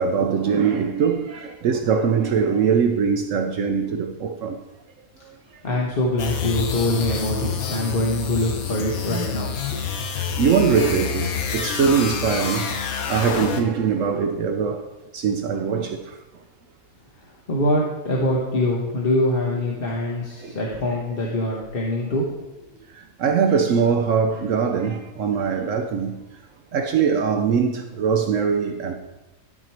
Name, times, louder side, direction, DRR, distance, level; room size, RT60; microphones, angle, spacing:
voice 1, 0.0-4.6 5.0-5.4 5.7-5.8 10.2-14.8 15.1-16.2 20.4-20.6 22.9-26.2 26.7-29.0, right 6 dB, 70° right, 1.0 m, -22 dB
voice 2, 5.6-9.5 17.5-22.3, left 1 dB, 45° left, 1.2 m, -24 dB
sound 1, 6.2-13.8, left 7 dB, 85° left, 1.4 m, -28 dB
12.5 x 4.5 x 4.5 m
omnidirectional pair, 1.5 m